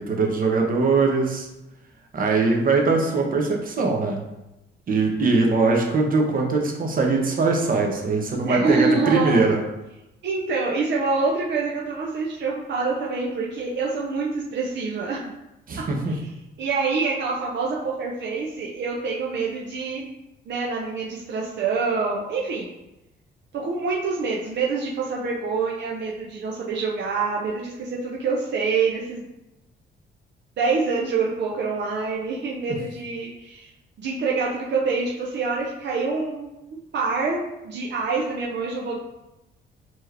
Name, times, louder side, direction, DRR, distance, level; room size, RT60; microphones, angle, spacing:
voice 1, 0.0-1.5 2.1-4.2 4.9-9.6 15.7-16.1, right 3 dB, 45° right, 1 dB, 0.9 m, -21 dB
voice 2, 8.4-9.4 10.2-15.3 15.8-16.2 16.6-20.1 20.5-22.7 23.5-29.3 30.6-33.7 34.0-39.0, right 4 dB, 65° right, -3 dB, 0.7 m, -26 dB
4.5 x 3.0 x 3.2 m, 0.94 s
cardioid pair, 90°, 20 cm